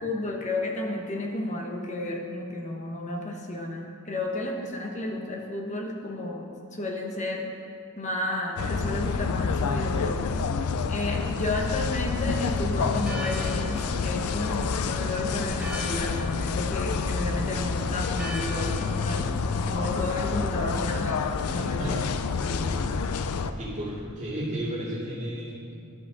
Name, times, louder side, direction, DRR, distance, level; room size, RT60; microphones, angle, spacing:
voice 1, 0.0-7.4 8.0-10.2 10.9-19.3 19.7-22.0 22.4-22.8, left 2 dB, 35° left, 0 dB, 1.0 m, -32 dB
sound 1, 8.6-23.5, left 5 dB, 85° left, 0.4 m, -28 dB
Church bell, 13.0-21.8, left 1 dB, 5° right, 1.2 m, -43 dB
voice 2, 23.6-25.7, right 1 dB, 35° right, -8 dB, 2.4 m, -33 dB
12.5 x 5.3 x 3.9 m, 2.3 s
head